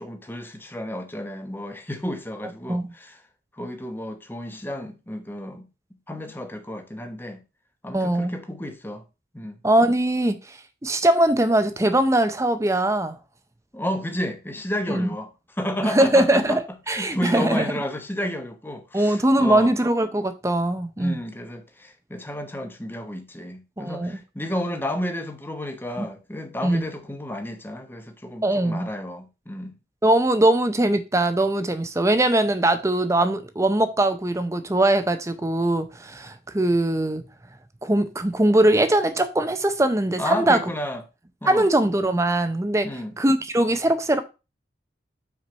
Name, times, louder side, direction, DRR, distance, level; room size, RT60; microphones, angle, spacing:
voice 1, 0.0-3.2 3.5-5.7 6.1-7.4 7.8-9.0 9.3-9.6 13.7-15.3 15.6-16.6 16.9-19.7 21.0-29.7 40.2-41.0 41.4-41.7 42.8-43.1, left 1 dB, 10° left, 0.9 m, -32 dB
voice 2, 7.9-8.3 9.6-10.6 10.8-13.2 14.9-15.1 15.8-17.7 18.9-21.2 23.8-24.1 26.0-26.1 26.6-26.8 28.4-28.9 30.0-37.2 37.8-40.6 41.5-42.9 43.2-44.2, right 1 dB, 15° right, 0.6 m, -21 dB
6.0 x 4.6 x 5.4 m
head